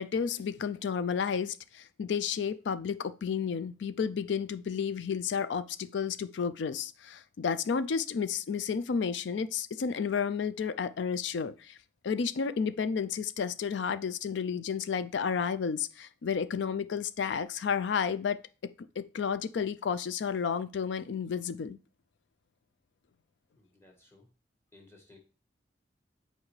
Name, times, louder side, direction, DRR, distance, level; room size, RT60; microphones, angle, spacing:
voice 1, 0.0-11.8 12.0-21.8, left 6 dB, 75° left, 0.4 m, -32 dB
voice 2, 23.6-24.3 24.7-25.2, left 2 dB, 15° left, 1.4 m, -58 dB
7.2 x 4.4 x 3.2 m
head